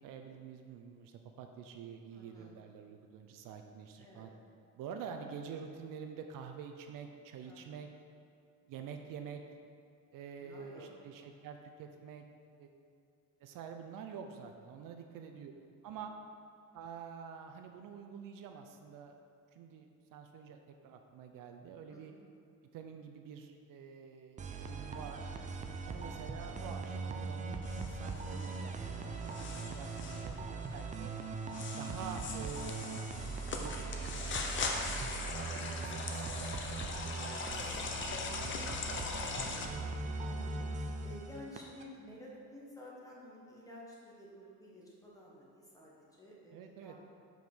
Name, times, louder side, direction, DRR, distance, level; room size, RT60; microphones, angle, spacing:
voice 1, 0.0-4.3 4.8-7.9 8.7-9.4 10.1-12.2 12.6-12.7 13.4-15.5 15.8-16.1 16.7-19.2 19.5-22.1 22.7-25.3 25.8-31.1 31.8-33.0 33.5-34.6 35.0-36.5 37.1-40.0 46.5-47.0, right 6 dB, 70° right, 5 dB, 0.6 m, -48 dB
voice 2, 2.1-2.6 4.0-4.3 7.4-7.8 10.4-10.9 15.1-15.7 21.9-22.2 25.9-26.0 34.9-35.3 40.2-47.1, equal, 10° left, -5 dB, 1.3 m, -53 dB
sound 1, 24.4-41.8, right 3 dB, 25° right, 0.3 m, -40 dB
sound 2, 27.6-39.7, left 4 dB, 35° left, 0.6 m, -41 dB
5.3 x 4.9 x 6.1 m, 2.4 s
cardioid pair, 155°, 34 cm